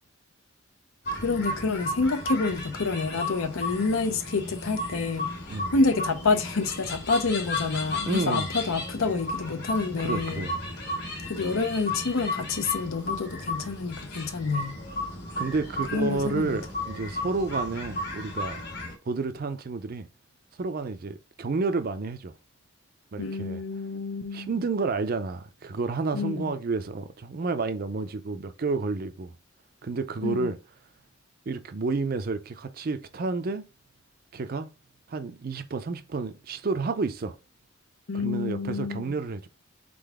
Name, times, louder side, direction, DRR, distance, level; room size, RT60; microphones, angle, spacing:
voice 1, 1.1-5.3 5.7-10.5 11.2-14.8 15.9-16.6 23.2-24.5 26.1-26.5 30.2-30.5 38.1-39.1, left 4 dB, 80° left, 0.7 m, -28 dB
sound 1, 1.1-18.9, left 1 dB, 55° left, 1.6 m, -34 dB
voice 2, 8.1-8.5 10.0-10.6 15.3-18.6 19.1-20.1 20.6-22.3 23.1-23.6 24.3-29.3 29.8-30.6 31.5-33.6 34.3-34.7 35.1-37.4 38.1-39.5, right 3 dB, 45° right, 0.5 m, -30 dB
3.9 x 3.5 x 3.5 m
head